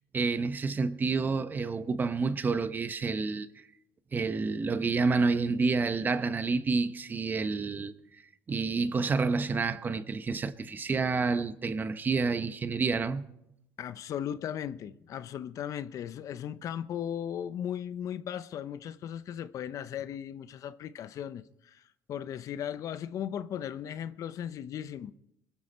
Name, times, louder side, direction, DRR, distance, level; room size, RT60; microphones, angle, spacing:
voice 1, 0.1-3.5 4.1-7.9 8.5-13.2, right 4 dB, 25° right, 0.8 m, -29 dB
voice 2, 13.8-21.8 22.1-25.1, left 9 dB, 50° left, 0.7 m, -37 dB
22.0 x 13.0 x 4.3 m
cardioid pair, 115°, 7 cm